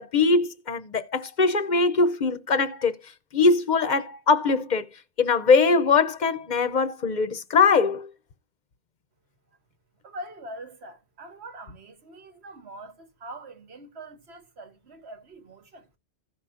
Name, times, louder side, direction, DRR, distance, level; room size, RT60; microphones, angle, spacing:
voice 1, 0.0-2.9 3.3-4.9 5.2-8.1, left 4 dB, 50° left, 0.6 m, -22 dB
voice 2, 10.0-15.9, right 1 dB, 90° right, 1.6 m, -43 dB
15.5 x 5.5 x 2.4 m
omnidirectional pair, 1.1 m